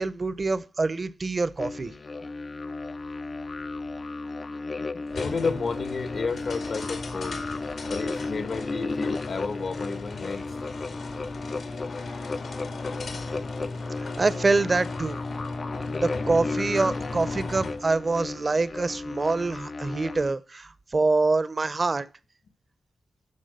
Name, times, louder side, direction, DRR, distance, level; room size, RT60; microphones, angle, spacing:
voice 1, 0.0-1.9 14.0-15.2 16.0-22.1, right 3 dB, 40° right, 0.7 m, -25 dB
sound 1, 1.6-20.3, left 3 dB, 45° left, 0.5 m, -34 dB
sound 2, 5.1-17.9, left 3 dB, 80° left, 2.3 m, -37 dB
voice 2, 5.2-7.4 7.9-10.6, left 4 dB, 65° left, 1.3 m, -31 dB
12.0 x 4.8 x 6.6 m
cardioid pair, 80°, 0 cm